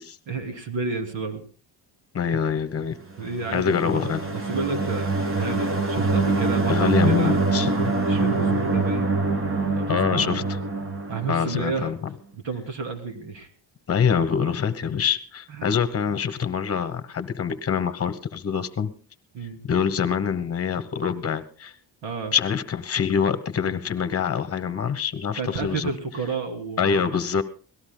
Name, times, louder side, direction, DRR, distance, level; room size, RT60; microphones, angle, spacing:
voice 1, 0.3-1.4 3.2-7.4 8.0-9.1 9.7-10.5 11.1-11.9 12.3-13.5 15.5-15.6 19.3-19.6 22.0-22.3 25.3-27.2, right 4 dB, 80° right, 5 dB, 3.0 m, -31 dB
voice 2, 2.1-3.0 3.5-4.3 6.7-8.0 9.9-10.4 11.3-12.0 13.9-18.9 19.6-21.7 22.3-25.9 26.8-27.4, left 7 dB, 30° left, 12 dB, 1.1 m, -25 dB
sound 1, 3.2-11.9, right 3 dB, 30° right, 1.5 m, -25 dB
25.5 x 18.5 x 2.2 m, 0.39 s
cardioid pair, 150°, 44 cm